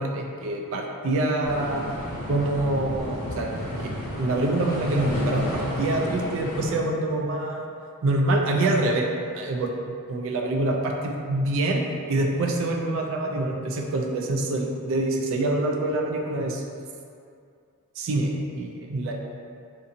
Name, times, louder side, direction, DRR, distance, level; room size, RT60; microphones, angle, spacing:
voice 1, 0.0-1.9 2.3-3.5 3.8-3.9 4.2-7.7 8.0-11.8 12.1-16.6 18.0-19.1, right 2 dB, 60° right, 1 dB, 0.3 m, -25 dB
sound 1, 1.4-6.8, left 1 dB, 75° left, 0.6 m, -32 dB
2.6 x 2.5 x 2.6 m, 2.4 s
head